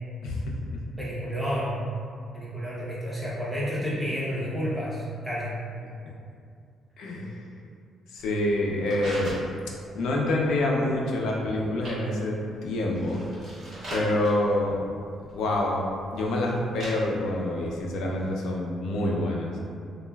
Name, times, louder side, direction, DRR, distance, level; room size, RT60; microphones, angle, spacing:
voice 1, 0.2-0.8 7.0-7.4 8.1-9.3 9.9-13.2 13.9-14.8 15.3-15.8 16.1-19.6, left 1 dB, 80° left, -2 dB, 0.4 m, -27 dB
voice 2, 1.0-1.8 2.3-5.6, equal, ahead, -8 dB, 0.5 m, -30 dB
sound 1, 8.2-18.2, right 1 dB, 35° right, 1.2 m, -42 dB
3.0 x 2.3 x 2.2 m, 2.3 s
cardioid pair, 150°, 0 cm